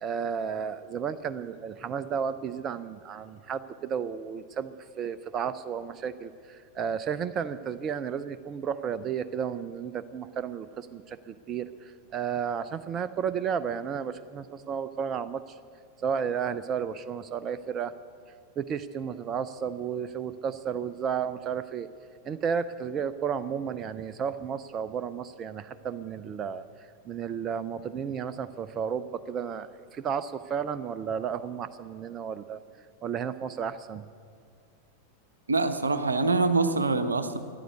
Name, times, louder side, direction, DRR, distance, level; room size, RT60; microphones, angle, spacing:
voice 1, 0.0-15.6 16.0-17.9 18.6-21.9 22.2-32.6 33.0-34.1, right 7 dB, 30° right, 14 dB, 0.4 m, -33 dB
voice 2, 35.5-37.4, right 3 dB, 75° right, 11 dB, 0.8 m, -25 dB
14.0 x 10.5 x 8.1 m, 2.2 s
figure-of-eight pair, 90°, 0 cm